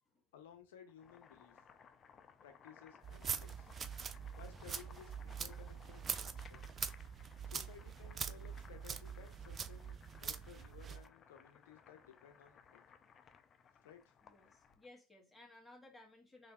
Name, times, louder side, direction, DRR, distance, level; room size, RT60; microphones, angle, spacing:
voice 1, 0.3-1.6 2.4-3.8 4.3-6.6 7.4-12.8 13.8-14.1, left 8 dB, 75° left, 0.7 m, -58 dB
Boiling, 0.8-14.9, left 6 dB, 30° left, 0.5 m, -62 dB
sound 1, 3.0-11.0, right 7 dB, 30° right, 0.4 m, -44 dB
voice 2, 14.2-16.5, left 2 dB, 5° left, 1.3 m, -60 dB
3.8 x 3.3 x 2.3 m
hypercardioid pair, 90°, 0 cm